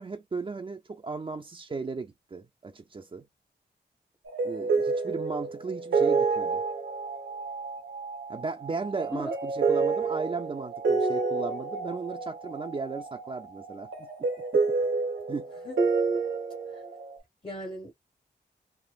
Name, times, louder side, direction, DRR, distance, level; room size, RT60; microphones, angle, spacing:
voice 1, 0.0-3.3 4.4-6.6 8.3-14.6 15.3-15.5, right 4 dB, 30° right, 0.4 m, -36 dB
sound 1, 4.3-17.2, right 4 dB, 85° right, 0.8 m, -29 dB
voice 2, 17.4-17.9, equal, 25° left, 0.9 m, -37 dB
3.2 x 2.0 x 2.3 m
cardioid pair, 60°, 19 cm